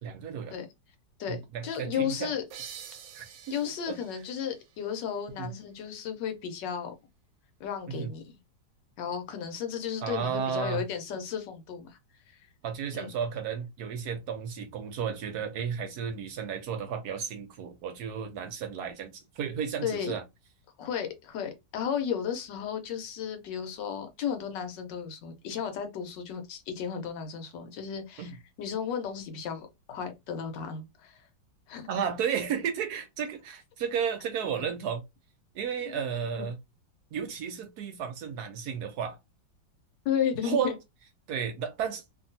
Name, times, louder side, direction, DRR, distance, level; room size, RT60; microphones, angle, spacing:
voice 1, 0.0-0.5 1.3-2.3 3.1-3.6 3.9-4.0 5.4-5.5 7.9-8.1 10.0-10.8 12.6-20.2 28.2-28.3 31.9-35.0 35.5-36.6 37.1-39.2 40.4-40.7 41.3-42.0, right 7 dB, 70° right, 1.0 m, -33 dB
voice 2, 1.2-2.4 3.5-6.9 7.6-8.4 9.0-12.0 12.3-12.4 12.9-13.1 19.8-20.1 20.8-28.3 28.6-31.2 31.7-32.1 35.8-36.0 40.0-40.8, left 8 dB, 80° left, 1.3 m, -34 dB
sound 1, 2.5-5.9, right 9 dB, 85° right, 1.3 m, -48 dB
2.8 x 2.6 x 2.6 m
omnidirectional pair, 2.0 m